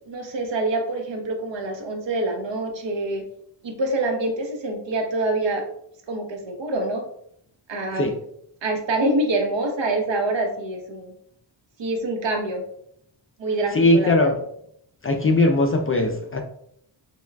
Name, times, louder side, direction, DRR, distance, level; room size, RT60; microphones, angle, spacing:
voice 1, 0.0-3.3 3.6-5.6 6.1-7.0 7.7-8.1 8.6-11.1 11.8-12.6 13.4-14.3, right 2 dB, 70° right, 0.9 m, -26 dB
voice 2, 13.7-14.4 15.0-16.4, left 2 dB, 30° left, 0.3 m, -19 dB
6.7 x 2.3 x 2.2 m
wide cardioid pair, 145°, 46 cm